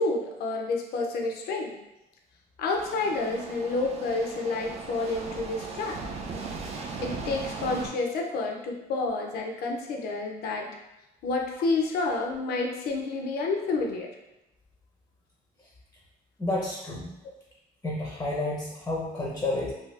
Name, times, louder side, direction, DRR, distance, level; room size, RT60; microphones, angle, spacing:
voice 1, 0.0-1.8 2.6-6.0 7.0-10.8 11.2-14.1, left 3 dB, 70° left, 2 dB, 0.5 m, -29 dB
sound 1, 2.8-7.9, right 4 dB, 40° right, 0.4 m, -38 dB
voice 2, 16.4-17.1 17.8-19.7, left 2 dB, 15° left, -4 dB, 0.6 m, -30 dB
2.6 x 2.3 x 3.2 m, 0.94 s
cardioid pair, 110°, 17 cm